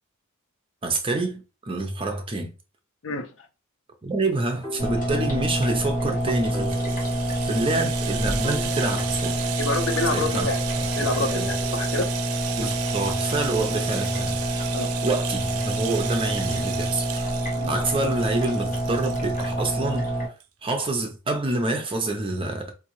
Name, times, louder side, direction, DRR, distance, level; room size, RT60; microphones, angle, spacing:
voice 1, 0.8-2.5 4.0-6.8 7.4-9.4 10.1-10.5 11.0-11.5 12.5-14.6 15.0-17.3 17.7-20.1 20.6-22.7, right 2 dB, 25° right, 0.6 m, -27 dB
sound 1, 4.6-5.8 6.1-6.2 6.5-8.0 8.4-9.9 10.3-12.2, left 1 dB, 20° left, 1.8 m, -40 dB
sound 2, 4.8-20.3, right 1 dB, 40° left, 1.3 m, -27 dB
Rattle (instrument), 5.9-20.1 20.4-20.5 20.8-20.9, right 10 dB, 85° right, 0.4 m, -35 dB
voice 2, 9.6-10.6 11.0-12.1 14.7-14.9 17.5-17.7, left 3 dB, 60° left, 0.6 m, -27 dB
3.6 x 2.6 x 3.0 m
head